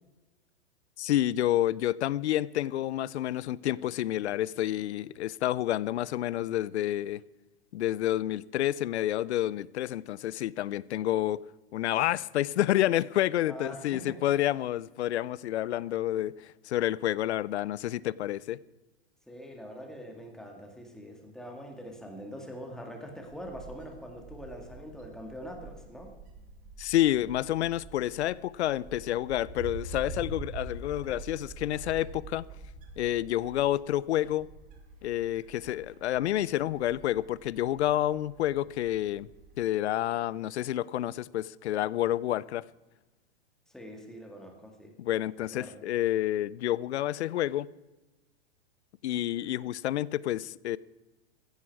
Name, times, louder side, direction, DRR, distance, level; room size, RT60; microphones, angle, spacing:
voice 1, 1.0-7.2 7.7-11.4 11.7-18.6 26.8-32.4 33.0-34.5 35.0-39.3 39.6-42.6 45.0-47.7 49.0-50.8, left 13 dB, 70° left, 0.6 m, -29 dB
voice 2, 13.5-14.2 19.3-26.1 43.7-44.9 45.5-45.7, equal, ahead, 2.1 m, -43 dB
Wind, 23.3-39.5, right 3 dB, 25° right, 2.4 m, -46 dB
15.0 x 15.0 x 4.7 m
hypercardioid pair, 150°, 34 cm